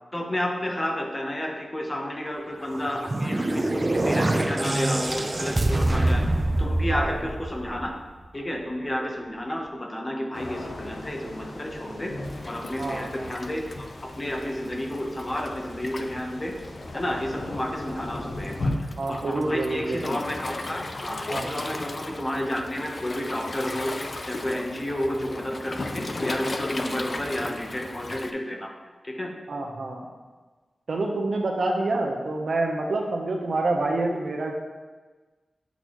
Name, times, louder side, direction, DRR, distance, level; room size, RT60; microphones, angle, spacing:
voice 1, 0.1-6.3 6.6-7.9 8.3-12.2 12.4-13.7 14.0-16.6 16.9-18.7 19.1-23.9 24.3-28.7 29.0-29.4, left 1 dB, 25° left, 1 dB, 0.9 m, -31 dB
sound 1, 2.7-8.1, right 1 dB, 30° right, 0.5 m, -25 dB
voice 2, 6.9-7.3 12.8-13.3 19.0-20.1 21.3-21.5 29.5-30.0 30.9-34.5, right 2 dB, 70° right, 1 dB, 0.8 m, -27 dB
sound 2, 10.3-18.7, left 2 dB, 70° left, 0.9 m, -38 dB
Waves surf, 12.2-28.3, left 2 dB, 50° left, 0.4 m, -37 dB
8.2 x 4.0 x 3.0 m, 1.3 s
wide cardioid pair, 65°, 0 cm